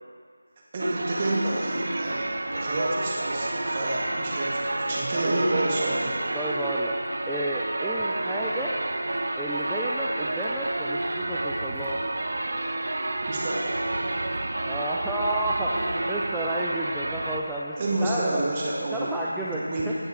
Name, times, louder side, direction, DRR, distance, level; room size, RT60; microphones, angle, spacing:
voice 1, 0.7-6.1 13.3-13.8 17.8-20.0, right 1 dB, 25° right, -4 dB, 1.7 m, -29 dB
sound 1, 0.8-17.4, right 2 dB, 60° right, 0.7 m, -29 dB
voice 2, 6.3-8.7 9.4-12.0 14.7-18.5 18.9-19.9, right 1 dB, ahead, -8 dB, 0.5 m, -31 dB
16.5 x 7.9 x 3.7 m, 2.1 s
figure-of-eight pair, 165°, 0 cm